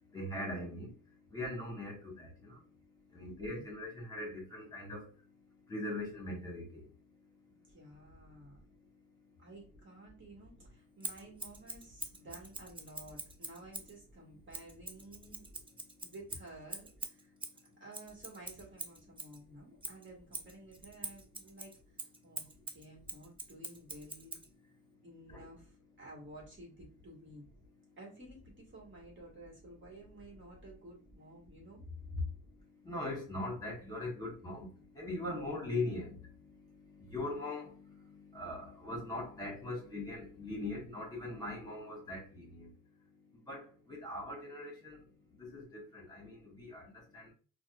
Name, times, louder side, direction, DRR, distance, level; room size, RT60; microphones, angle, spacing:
voice 1, 0.1-0.9 1.3-2.6 3.1-5.1 5.7-6.8 25.3-25.4 32.8-42.7 43.5-45.1 45.4-47.3, left 2 dB, 15° left, 1.6 m, -41 dB
voice 2, 7.7-8.6 9.4-15.5 16.0-17.3 17.8-21.8 22.2-24.4 25.0-27.4 28.0-32.3, left 1 dB, 40° right, 1.6 m, -51 dB
Scissors, 11.0-14.0 14.5-19.4 19.8-24.5, right 2 dB, 15° right, 0.6 m, -45 dB
4.1 x 2.4 x 2.4 m
cardioid pair, 90°, 30 cm